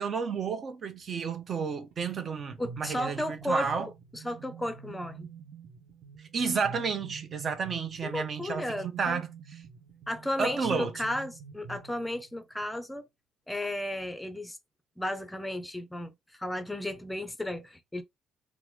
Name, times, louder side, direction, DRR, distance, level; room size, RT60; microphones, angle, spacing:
voice 1, 0.0-3.9 6.3-9.3 10.4-10.9, right 5 dB, 40° right, 0.8 m, -31 dB
sound 1, 1.9-12.4, right 5 dB, 75° right, 1.0 m, -47 dB
voice 2, 2.6-5.3 8.0-9.2 10.1-13.1 13.5-14.6 15.0-18.0, left 1 dB, 10° left, 0.6 m, -34 dB
3.5 x 2.1 x 3.1 m
cardioid pair, 115°, 0 cm